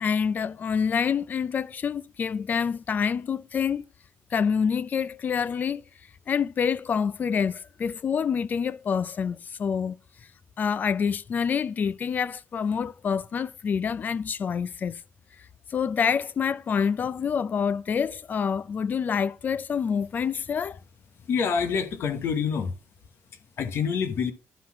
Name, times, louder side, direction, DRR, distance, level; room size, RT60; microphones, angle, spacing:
voice 1, 0.0-3.9 4.3-5.8 6.3-10.0 10.6-15.0 15.7-20.8, left 6 dB, 40° left, 0.4 m, -27 dB
voice 2, 21.2-22.7 23.3-24.3, left 6 dB, 60° left, 1.0 m, -27 dB
11.5 x 4.0 x 5.7 m
cardioid pair, 135°, 5 cm